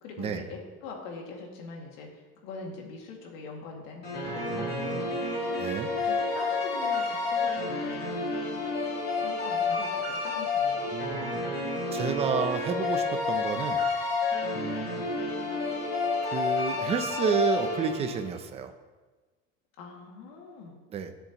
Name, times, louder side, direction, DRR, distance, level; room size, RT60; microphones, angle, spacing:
voice 1, 0.0-5.2 6.0-8.3 9.2-10.9 11.8-12.4 14.6-14.8 19.8-20.8, left 3 dB, 80° left, 0 dB, 2.2 m, -43 dB
sound 1, 4.0-18.3, left 3 dB, 30° left, 2.7 m, -30 dB
voice 2, 4.5-5.0 5.6-5.9 10.9-11.4 11.9-13.8 14.5-15.0 16.3-18.7 20.9-21.1, right 6 dB, 20° right, 8 dB, 0.5 m, -30 dB
14.0 x 7.0 x 3.0 m, 1.3 s
cardioid pair, 175°, 31 cm